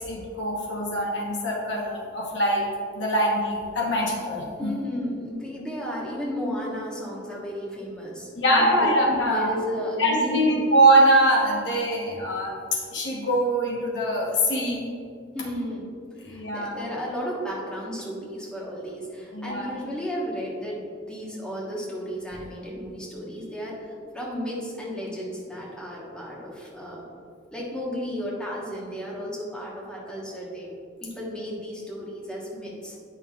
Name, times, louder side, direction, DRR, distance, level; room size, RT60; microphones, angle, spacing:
voice 1, 0.0-2.7 2.9-4.7 5.8-5.9 8.4-9.5 10.0-14.9 16.2-16.8 19.3-19.7, right 1 dB, 70° left, -1 dB, 1.0 m, -23 dB
voice 2, 4.6-8.9 9.2-10.7 15.3-15.9 16.2-27.0 27.5-30.7 31.0-32.9, equal, 5° left, -5 dB, 1.1 m, -33 dB
8.9 x 5.6 x 2.4 m, 2.3 s
head